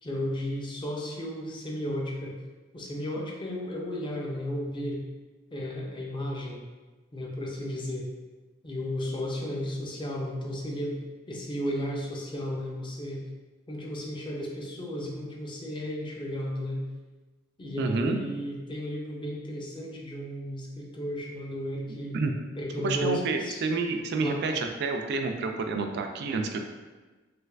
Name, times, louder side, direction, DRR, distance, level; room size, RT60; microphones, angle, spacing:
voice 1, 0.0-2.3 2.7-5.0 5.5-6.6 7.1-8.1 8.6-11.0 11.3-13.2 13.7-16.8 17.6-22.2 22.6-23.6 24.2-24.5, equal, 25° left, -2 dB, 0.5 m, -34 dB
voice 2, 17.8-18.2 22.1-22.3 22.8-26.6, right 3 dB, 60° right, 4 dB, 0.3 m, -29 dB
3.3 x 3.1 x 2.3 m, 1.3 s
head